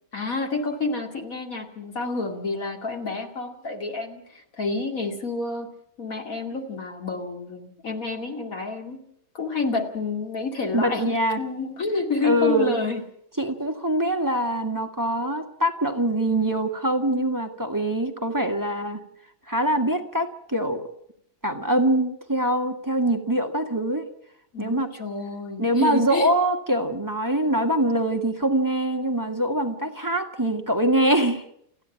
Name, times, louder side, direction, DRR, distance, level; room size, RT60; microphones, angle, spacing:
voice 1, 0.1-5.7 6.0-9.0 9.3-13.0 24.5-26.3, left 3 dB, 85° left, 4 dB, 2.8 m, -29 dB
voice 2, 10.7-11.4 12.2-12.8 13.4-19.0 19.5-20.9 21.4-24.0 24.6-24.9 25.6-31.4, right 1 dB, 15° right, 4 dB, 1.8 m, -23 dB
29.0 x 9.9 x 9.0 m, 0.71 s
omnidirectional pair, 1.4 m